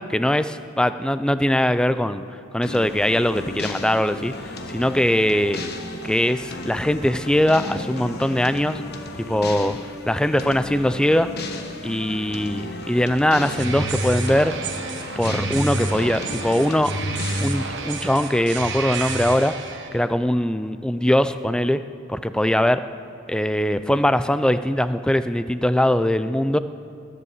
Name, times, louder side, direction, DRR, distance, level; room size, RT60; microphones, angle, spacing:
voice 1, 0.0-2.2 2.5-5.6 6.0-8.8 9.2-9.8 10.0-11.3 11.8-14.5 15.2-16.9 17.4-19.5 19.9-21.8 22.1-22.8 23.3-26.6, left 1 dB, 5° left, 12 dB, 0.4 m, -21 dB
sound 1, 2.6-18.2, left 2 dB, 50° left, 1.3 m, -34 dB
sound 2, 13.4-19.9, right 2 dB, 60° right, 1.4 m, -29 dB
20.5 x 8.3 x 7.2 m, 2.6 s
head